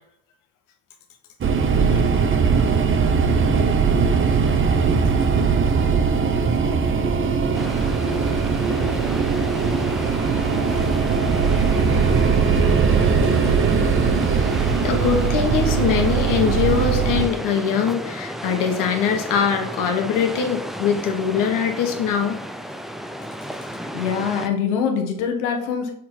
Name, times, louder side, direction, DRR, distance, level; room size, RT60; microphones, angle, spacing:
sound 1, 1.4-17.3, right 5 dB, 35° right, 0.9 m, -20 dB
sound 2, 7.5-24.5, equal, ahead, 0.5 m, -33 dB
voice 1, 14.3-22.4, left 7 dB, 70° left, 4 dB, 1.4 m, -22 dB
voice 2, 23.9-25.9, left 7 dB, 85° left, 4 dB, 1.2 m, -24 dB
6.4 x 3.9 x 4.4 m, 0.73 s
supercardioid pair, 70°, 34 cm